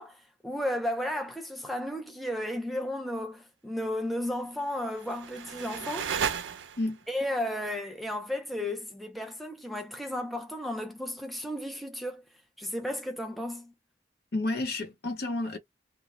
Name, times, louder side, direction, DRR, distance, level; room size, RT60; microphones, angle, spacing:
voice 1, 0.0-6.1 7.1-12.2 12.6-13.7, left 1 dB, ahead, 0.4 m, -34 dB
sound 1, 4.7-7.1, right 7 dB, 80° right, 0.4 m, -34 dB
voice 2, 14.3-15.6, left 2 dB, 65° left, 0.9 m, -30 dB
2.2 x 2.0 x 2.9 m
head